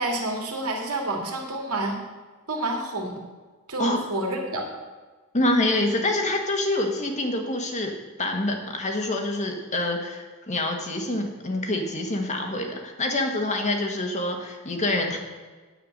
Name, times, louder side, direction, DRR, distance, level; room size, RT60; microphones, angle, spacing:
voice 1, 0.0-2.0 2.5-3.2 3.7-4.7, right 2 dB, 75° right, 1 dB, 2.4 m, -28 dB
voice 2, 5.3-7.9 8.2-15.2, left 1 dB, 35° left, 3 dB, 1.6 m, -26 dB
9.5 x 9.0 x 6.6 m, 1.3 s
head